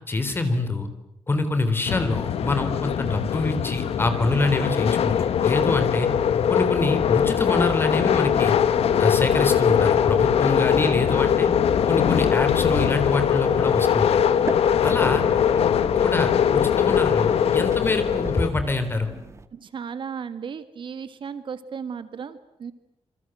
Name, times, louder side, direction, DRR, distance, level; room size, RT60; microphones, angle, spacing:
voice 1, 0.1-0.9 1.3-6.1 6.5-8.5 9.0-11.5 11.9-14.2 14.8-15.2 16.0-19.1, left 2 dB, 20° left, 9 dB, 3.7 m, -25 dB
sound 1, 1.9-18.5, left 8 dB, 85° left, 1.4 m, -21 dB
sound 2, 7.0-19.5, right 3 dB, 30° right, 1.6 m, -41 dB
voice 2, 19.5-22.7, right 6 dB, 55° right, 11 dB, 1.8 m, -35 dB
28.0 x 25.0 x 7.9 m, 0.84 s
wide cardioid pair, 165°, 10 cm